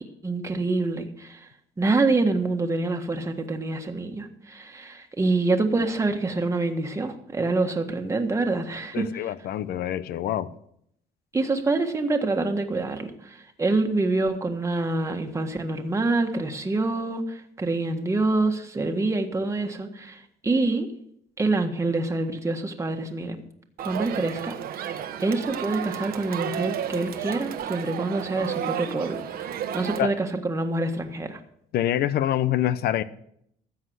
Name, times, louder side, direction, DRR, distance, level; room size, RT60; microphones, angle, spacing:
voice 1, 0.2-1.4 1.8-9.1 11.3-20.9 21.4-23.4 23.8-31.4, right 3 dB, 15° right, 1.5 m, -26 dB
voice 2, 8.9-10.5 30.0-30.2 31.7-33.0, left 12 dB, 70° left, 0.8 m, -25 dB
Crowd, 23.8-30.0, right 9 dB, 65° right, 1.1 m, -32 dB
13.5 x 8.1 x 6.3 m
cardioid pair, 110°, 17 cm